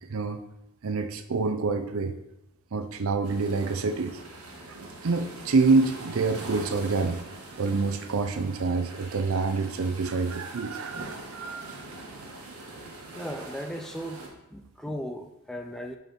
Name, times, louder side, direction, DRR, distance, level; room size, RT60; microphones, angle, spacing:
voice 1, 0.0-0.4 0.8-2.2 2.7-4.2 4.7-4.8 5.0-7.2 7.6-11.7, right 4 dB, 70° right, 8 dB, 0.5 m, -27 dB
sound 1, 3.2-14.3, right 2 dB, 85° right, 1.3 m, -43 dB
voice 2, 13.1-14.2 14.5-16.0, equal, ahead, 4 dB, 0.5 m, -36 dB
5.4 x 4.6 x 5.7 m, 0.88 s
head